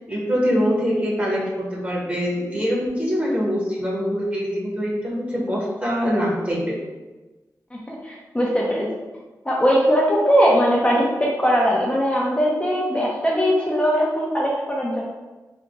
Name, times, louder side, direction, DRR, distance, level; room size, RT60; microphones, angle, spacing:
voice 1, 0.1-6.8, equal, 20° right, -4 dB, 1.4 m, -24 dB
voice 2, 7.7-8.9 9.4-11.0 11.4-15.0, equal, 15° left, -5 dB, 0.7 m, -20 dB
3.6 x 2.9 x 3.7 m, 1.2 s
wide cardioid pair, 75°, 7 cm